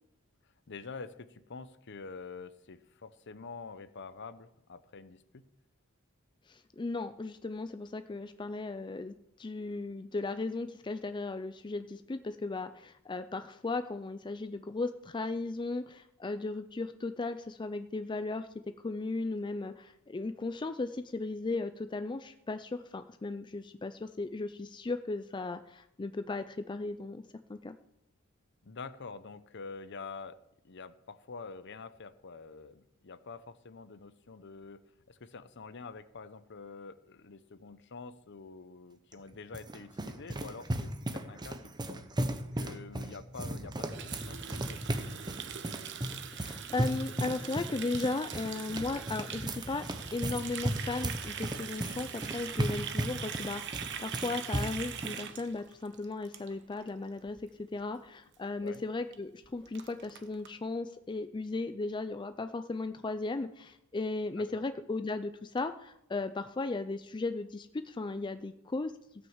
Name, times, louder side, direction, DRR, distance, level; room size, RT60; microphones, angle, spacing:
voice 1, 0.7-5.4 28.6-30.4 30.6-34.8 35.1-42.0 42.5-45.5 58.6-58.8 64.4-64.6, left 4 dB, 55° left, 13 dB, 0.7 m, -47 dB
voice 2, 6.5-18.5 18.8-27.2 27.5-27.7 46.3-49.9 50.1-57.4 57.7-68.9, left 3 dB, 20° left, 10 dB, 0.4 m, -36 dB
sound 1, 39.1-55.2, right 1 dB, 20° right, 0.8 m, -36 dB
Water tap faucet, 43.9-56.9 57.2-57.4 57.7-58.1 58.3-58.4 58.7-58.8 59.1-59.2 59.4-60.5, right 8 dB, 55° right, 1.0 m, -42 dB
16.5 x 6.2 x 7.2 m, 0.82 s
head